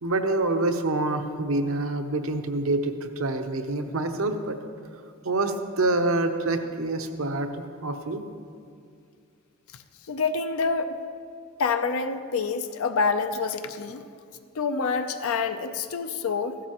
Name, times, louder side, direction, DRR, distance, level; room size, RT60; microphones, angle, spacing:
voice 1, 0.0-4.6 5.2-8.2, right 2 dB, 65° right, 7 dB, 0.8 m, -26 dB
voice 2, 10.1-11.0 11.6-14.0 14.6-16.6, left 4 dB, 70° left, 8 dB, 0.5 m, -27 dB
15.0 x 12.0 x 3.0 m, 2.3 s
head